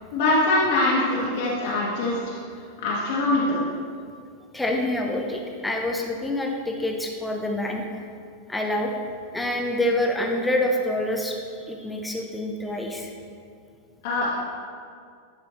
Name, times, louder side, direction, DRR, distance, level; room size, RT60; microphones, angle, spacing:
voice 1, 0.1-2.2 2.8-3.6 14.0-14.4, left 2 dB, 50° left, -7 dB, 1.6 m, -23 dB
voice 2, 4.5-7.8 8.5-8.9 9.3-13.1, left 1 dB, 5° left, 1 dB, 1.0 m, -26 dB
11.0 x 6.0 x 3.2 m, 2.2 s
figure-of-eight pair, 90°, 0 cm